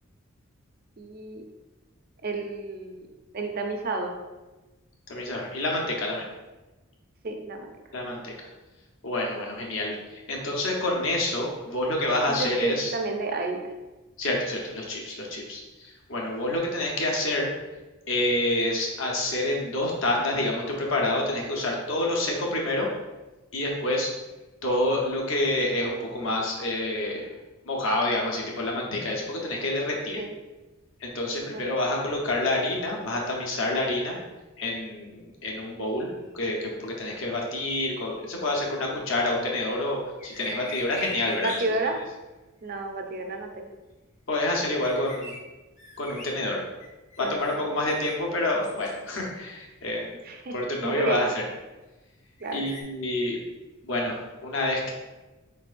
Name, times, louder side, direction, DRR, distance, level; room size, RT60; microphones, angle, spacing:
voice 1, 1.0-1.4 2.2-3.1 3.3-4.2 7.2-7.7 12.3-13.7 30.2-30.3 31.5-31.6 41.4-42.0 42.6-43.7 47.2-47.9 50.2-50.6 50.8-51.2 52.4-52.6, right 3 dB, 45° right, 4 dB, 0.5 m, -31 dB
voice 2, 5.1-6.2 7.9-8.3 9.0-12.9 14.2-17.5 18.1-22.9 23.5-24.1 24.6-27.3 27.6-30.2 31.0-34.2 34.6-41.6 44.3-45.3 46.0-46.7 47.2-50.1 50.5-51.4 52.5-53.4 53.8-54.9, left 1 dB, 65° left, -1 dB, 0.9 m, -28 dB
sound 1, 40.2-41.6 44.7-45.4 45.8-46.3 46.8-48.1 48.6-49.2 49.9-50.0 52.4-52.8, left 1 dB, 35° left, 0.8 m, -41 dB
4.5 x 4.5 x 2.5 m, 1.1 s
head